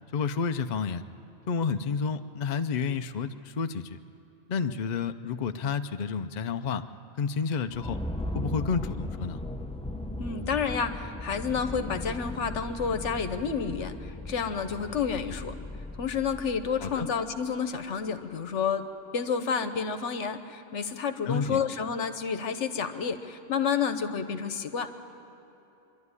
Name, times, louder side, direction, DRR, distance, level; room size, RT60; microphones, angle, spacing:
voice 1, 0.1-1.0 1.5-4.0 4.5-6.8 7.2-8.0 8.3-9.4 16.8-17.1 21.3-21.6, left 5 dB, 50° left, 8 dB, 0.5 m, -30 dB
sound 1, 7.7-17.3, left 1 dB, 5° left, 0.6 m, -37 dB
voice 2, 10.2-15.5 16.0-18.8 19.1-24.9, left 6 dB, 65° left, 9 dB, 1.2 m, -30 dB
25.0 x 11.5 x 9.7 m, 3.0 s
omnidirectional pair, 1.3 m